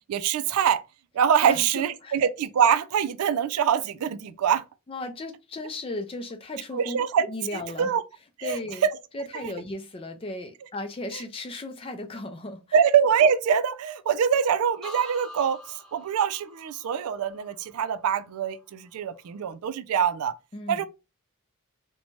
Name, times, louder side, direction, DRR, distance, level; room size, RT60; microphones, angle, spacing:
voice 1, 0.1-0.8 1.1-4.6 6.7-7.3 7.5-8.0 8.4-8.6 9.3-9.5 12.7-20.3 20.7-20.9, right 8 dB, 80° right, 0.3 m, -24 dB
voice 2, 1.4-2.2 4.9-7.0 7.3-7.9 8.4-8.8 9.1-12.6 20.5-20.9, left 2 dB, 25° left, 0.4 m, -36 dB
sound 1, 14.8-18.6 19.0-19.5, left 1 dB, 5° left, 0.9 m, -46 dB
2.6 x 2.2 x 3.0 m
head